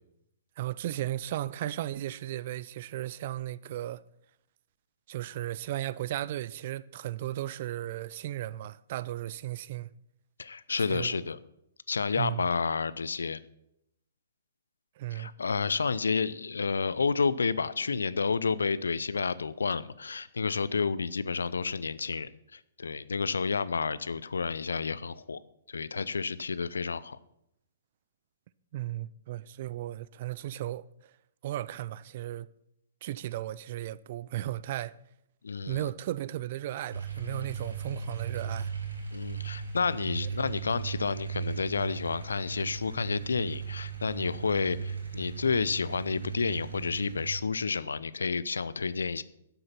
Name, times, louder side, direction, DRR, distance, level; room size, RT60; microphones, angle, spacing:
voice 1, 0.6-4.0 5.1-9.9 10.8-11.2 12.1-12.4 15.0-15.3 28.7-30.8 31.4-32.5 33.0-34.9 35.7-38.7, right 14 dB, 45° right, 0.5 m, -35 dB
voice 2, 10.4-11.4 11.9-13.4 15.1-25.4 25.7-27.2 35.4-35.9 39.1-49.2, left 5 dB, 75° left, 0.6 m, -30 dB
sound 1, 36.9-47.4, right 6 dB, 80° right, 4.4 m, -37 dB
11.5 x 7.9 x 5.8 m
figure-of-eight pair, 120°, 0 cm